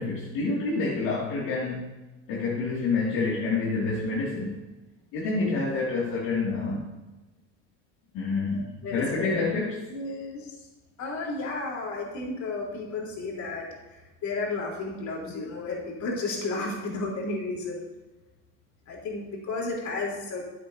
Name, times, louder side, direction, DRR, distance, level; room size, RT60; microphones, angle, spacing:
voice 1, 0.0-1.9 2.3-4.7 5.1-6.9 8.1-9.8, left 3 dB, 70° left, -6 dB, 2.4 m, -28 dB
voice 2, 8.8-9.3 9.9-10.6 11.0-17.9 18.9-20.4, left 3 dB, 55° left, -2 dB, 3.7 m, -33 dB
14.0 x 8.6 x 2.8 m, 1.1 s
supercardioid pair, 95°, 35 cm